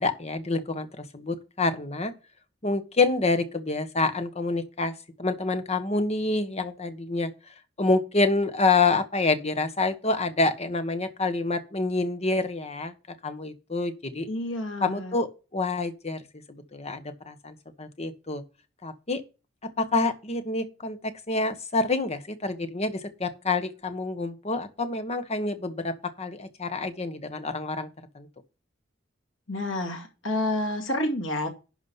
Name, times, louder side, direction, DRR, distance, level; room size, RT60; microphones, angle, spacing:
voice 1, 0.0-2.1 2.6-4.9 5.2-7.3 7.8-12.9 13.2-14.3 14.8-18.4 18.8-19.2 19.8-27.9 28.1-28.3, left 3 dB, 35° left, 1.3 m, -27 dB
voice 2, 14.3-15.1 29.5-31.5, left 1 dB, 80° left, 2.4 m, -29 dB
11.5 x 4.9 x 5.6 m
head